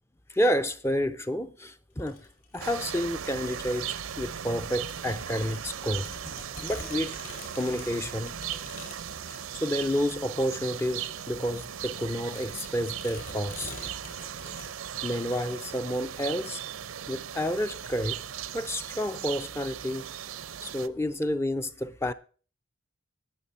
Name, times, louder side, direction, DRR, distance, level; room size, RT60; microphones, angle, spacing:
voice 1, 0.3-2.3 2.5-6.1 6.6-7.2 7.6-8.4 9.2-13.8 14.5-14.6 15.0-16.6 17.1-18.2 18.5-20.1 20.6-22.1, equal, 10° left, 0.4 m, -30 dB
sound 1, 2.0-14.7, left 2 dB, 40° left, 5.1 m, -47 dB
sound 2, 2.6-20.9, right 9 dB, 85° right, 0.6 m, -38 dB
19.0 x 6.7 x 4.2 m
head